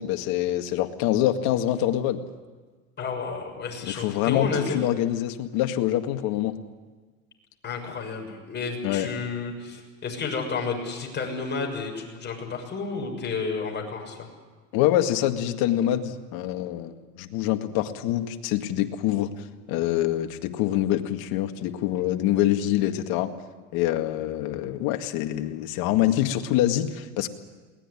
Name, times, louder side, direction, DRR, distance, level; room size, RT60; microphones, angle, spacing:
voice 1, 0.0-2.2 3.8-6.6 8.8-9.1 14.7-19.3 19.7-23.3 23.7-27.3, left 13 dB, 60° left, 6 dB, 2.1 m, -25 dB
voice 2, 3.0-4.8 7.6-14.3, left 4 dB, 25° left, 1 dB, 6.4 m, -31 dB
21.5 x 19.0 x 10.0 m, 1.4 s
supercardioid pair, 120°, 41 cm